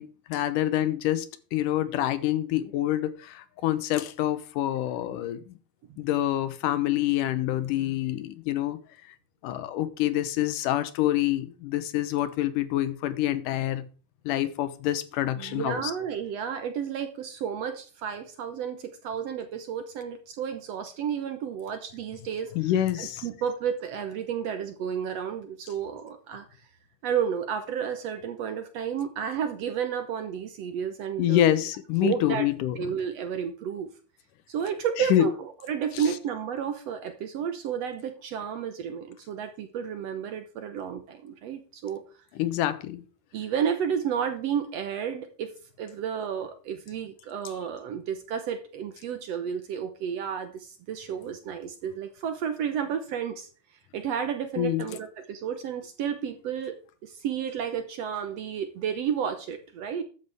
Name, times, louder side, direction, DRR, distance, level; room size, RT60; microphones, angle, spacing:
voice 1, 0.0-5.5 6.0-8.8 9.4-13.9 14.3-15.9 22.6-23.2 31.2-32.9 35.0-35.3 35.9-36.1 42.4-43.0 54.6-54.8, left 13 dB, 80° left, 2.4 m, -27 dB
voice 2, 15.4-22.7 23.0-26.4 27.0-31.6 32.0-32.5 32.8-33.9 34.5-42.0 43.3-45.5 45.8-53.5 53.9-56.8 57.0-60.0, right 8 dB, 65° right, 1.8 m, -32 dB
13.0 x 9.5 x 3.5 m
omnidirectional pair, 3.7 m